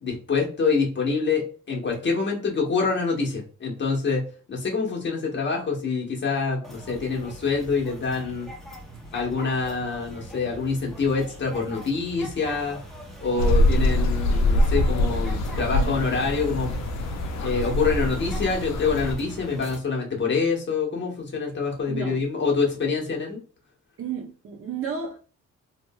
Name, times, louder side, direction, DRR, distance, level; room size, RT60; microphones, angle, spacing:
voice 1, 0.0-4.2 4.5-8.5 9.1-12.8 13.2-16.7 17.4-23.4, left 4 dB, 40° left, 1.1 m, -26 dB
sound 1, 6.6-19.8, equal, ahead, 0.8 m, -41 dB
sound 2, 13.4-19.2, left 1 dB, 65° left, 0.6 m, -24 dB
voice 2, 15.6-16.0 21.9-22.2 24.0-25.3, right 6 dB, 45° right, 0.7 m, -33 dB
3.0 x 2.8 x 2.2 m
cardioid pair, 90°, 30 cm